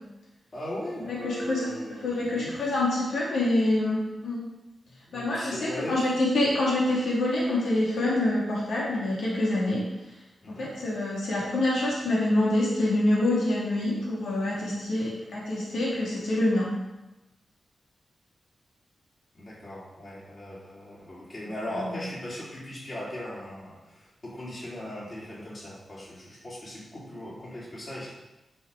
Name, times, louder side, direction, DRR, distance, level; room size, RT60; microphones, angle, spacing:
voice 1, 0.5-2.6 4.9-6.0 10.4-10.7 19.3-28.1, left 1 dB, 35° left, -7 dB, 3.9 m, -38 dB
voice 2, 1.1-1.7 2.0-4.4 5.1-9.8 10.5-16.7, left 1 dB, 90° left, -5 dB, 2.8 m, -26 dB
10.5 x 5.8 x 4.9 m, 0.97 s
wide cardioid pair, 135°, 0 cm